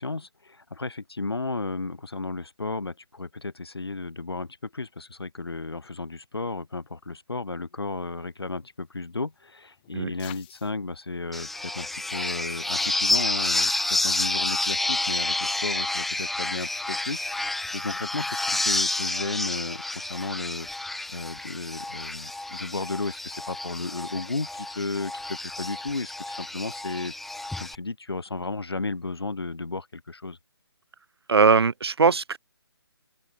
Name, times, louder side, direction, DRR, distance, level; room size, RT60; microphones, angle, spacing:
voice 1, 0.0-20.7 21.1-27.1 27.6-30.4, left 3 dB, 70° left, 5.0 m, -34 dB
sound 1, 7.8-13.0, left 20 dB, 20° left, 4.3 m, -55 dB
sound 2, 11.3-27.7, left 2 dB, ahead, 0.5 m, -29 dB
voice 2, 31.3-32.4, right 5 dB, 70° right, 0.5 m, -20 dB
open air
figure-of-eight pair, 145°, 14 cm